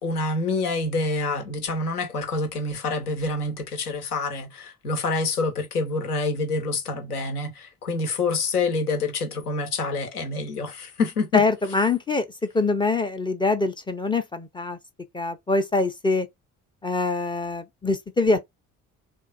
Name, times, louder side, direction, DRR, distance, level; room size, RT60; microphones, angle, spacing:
voice 1, 0.0-11.4, left 3 dB, 90° left, 0.6 m, -27 dB
voice 2, 11.3-12.3 12.5-14.8 15.1-16.3 16.8-18.4, left 3 dB, 10° left, 0.3 m, -24 dB
3.1 x 2.2 x 2.4 m
figure-of-eight pair, 50°, 44 cm